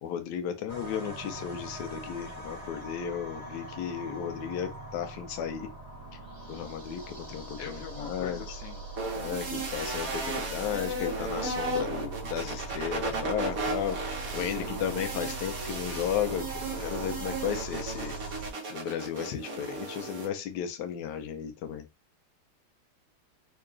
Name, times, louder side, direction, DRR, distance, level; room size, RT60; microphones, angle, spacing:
voice 1, 0.0-5.7 6.5-8.4 9.2-18.1 18.7-21.8, left 9 dB, 80° left, 0.9 m, -34 dB
sound 1, 0.7-18.5, right 2 dB, 25° right, 0.9 m, -41 dB
voice 2, 7.6-8.8 14.3-14.8, left 7 dB, 65° left, 1.3 m, -43 dB
sound 2, 9.0-20.3, right 2 dB, 50° right, 1.2 m, -35 dB
3.8 x 2.2 x 3.7 m
omnidirectional pair, 2.4 m